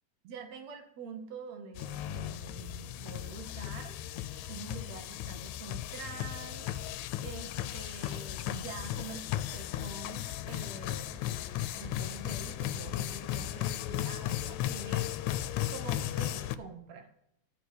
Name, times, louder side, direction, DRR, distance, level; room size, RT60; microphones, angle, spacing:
voice 1, 0.2-6.7 7.2-11.2 11.8-15.2 15.7-17.1, right 5 dB, 70° right, 6 dB, 2.4 m, -46 dB
sound 1, 1.8-16.6, left 12 dB, 85° left, 1.9 m, -36 dB
13.5 x 4.6 x 8.2 m, 0.79 s
omnidirectional pair, 3.3 m